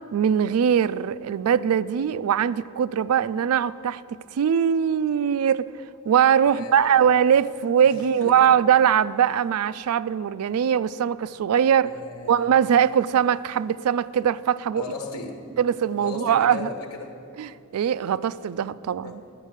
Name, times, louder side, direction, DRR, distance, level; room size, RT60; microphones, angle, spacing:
voice 1, 0.1-4.0 4.3-5.7 6.0-11.9 12.3-14.8 15.6-16.7 17.4-19.2, right 8 dB, 85° right, 0.3 m, -21 dB
voice 2, 6.4-7.0 7.8-8.5 11.8-12.5 14.7-15.5 16.0-17.2 19.0-19.2, left 3 dB, 85° left, 1.2 m, -36 dB
11.0 x 8.2 x 6.4 m
head